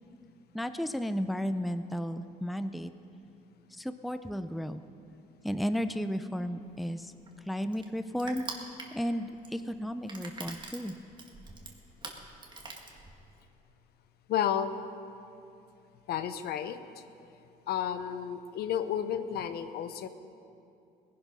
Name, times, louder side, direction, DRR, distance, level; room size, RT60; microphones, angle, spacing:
voice 1, 0.5-2.9 3.7-4.8 5.4-7.1 7.4-8.5 8.9-10.9, equal, ahead, 10 dB, 0.5 m, -33 dB
Crushing, 6.7-13.5, right 3 dB, 25° right, 1.8 m, -45 dB
voice 2, 14.3-14.7 16.1-16.8 17.7-20.1, left 9 dB, 70° left, 10 dB, 0.9 m, -31 dB
18.5 x 11.0 x 5.5 m, 2.7 s
cardioid pair, 110°, 17 cm